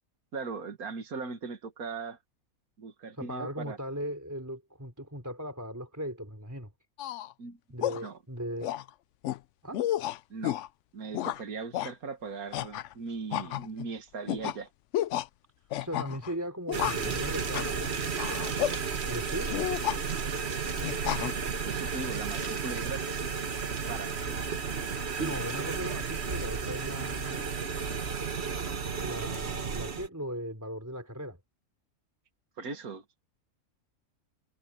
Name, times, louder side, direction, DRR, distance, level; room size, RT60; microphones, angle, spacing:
voice 1, 0.3-2.2 2.8-3.8 7.4-7.6 8.0-8.2 10.3-10.6 10.9-14.7 21.6-23.2 23.9-24.6 32.6-33.0, right 4 dB, 80° right, 2.3 m, -39 dB
voice 2, 3.2-6.7 7.7-8.7 9.6-9.8 15.8-18.1 19.1-19.5 25.2-27.5 29.0-31.4, equal, 10° right, 3.4 m, -38 dB
sound 1, 7.0-7.3 7.8-8.1 8.6-8.9 9.2-9.4 9.7-10.7 11.1-11.4 11.7-11.9 12.5-12.9 13.3-13.9 14.3-14.6 14.9-15.3 15.7-16.3 16.7-17.1 17.5-17.7 18.2-18.7 19.5-20.0 20.8-21.3, left 13 dB, 65° left, 0.8 m, -31 dB
sound 2, 16.7-30.1, right 5 dB, 45° right, 1.6 m, -33 dB
omnidirectional pair, 1.5 m